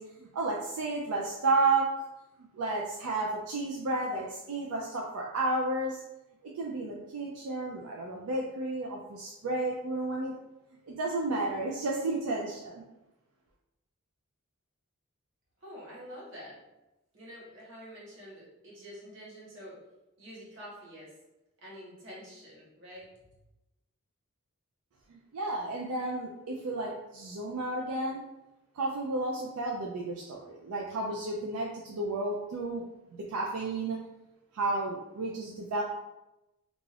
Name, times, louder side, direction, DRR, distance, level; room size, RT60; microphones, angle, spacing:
voice 1, 0.0-1.9 2.5-6.0 6.4-10.3 10.9-12.8 25.1-28.2 28.7-32.8 33.3-34.0 34.5-35.8, right 2 dB, 80° right, -2 dB, 0.4 m, -32 dB
voice 2, 15.6-16.6 17.1-19.8 20.2-21.1 21.6-23.1, equal, 55° right, -6 dB, 1.1 m, -47 dB
2.5 x 2.3 x 3.2 m, 0.94 s
head